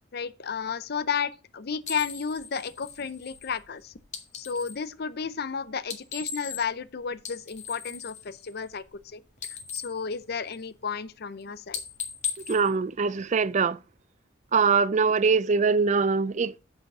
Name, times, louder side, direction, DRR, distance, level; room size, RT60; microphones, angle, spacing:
voice 1, 0.1-3.9 4.3-8.8 9.1-9.2 9.7-11.8, left 6 dB, 55° left, 0.6 m, -32 dB
sound 1, 1.8-4.9 5.8-6.9 7.1-9.0 9.3-10.9 11.2-11.4 11.7-13.5, left 6 dB, 40° left, 1.7 m, -38 dB
voice 2, 12.5-13.8 14.5-16.6, right 5 dB, 40° right, 0.4 m, -23 dB
8.1 x 5.8 x 5.4 m
head